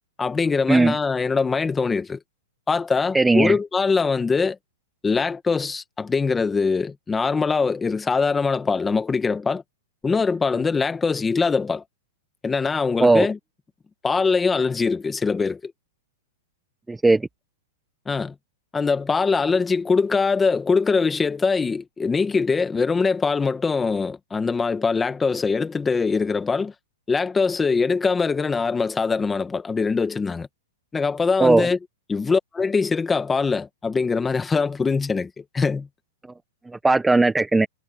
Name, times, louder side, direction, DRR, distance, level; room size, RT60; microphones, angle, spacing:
voice 1, 0.2-2.2 2.7-4.6 5.0-9.6 10.0-11.8 12.4-13.4 14.0-15.7 18.0-18.3 18.7-26.7 27.1-30.5 30.9-31.8 32.1-35.9, left 4 dB, 10° left, 1.5 m, -22 dB
voice 2, 3.1-3.6 13.0-13.3 16.9-17.2 31.4-31.7 36.8-37.7, right 3 dB, 5° right, 0.9 m, -17 dB
hypercardioid pair, 155°, 0 cm